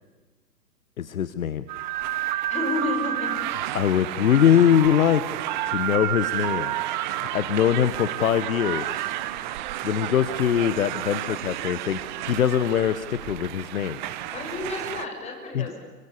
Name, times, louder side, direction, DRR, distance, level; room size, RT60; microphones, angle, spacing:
voice 1, 1.0-1.7 3.7-5.2 5.6-6.8 7.3-9.1 9.8-14.0 15.5-15.6, left 9 dB, 55° left, 13 dB, 1.3 m, -22 dB
sound 1, 1.7-15.0, right 13 dB, 30° right, 1.1 m, -30 dB
voice 2, 2.5-3.3 14.3-15.8, left 3 dB, 15° left, 2 dB, 6.2 m, -31 dB
29.5 x 24.0 x 7.3 m, 1.3 s
figure-of-eight pair, 130°, 48 cm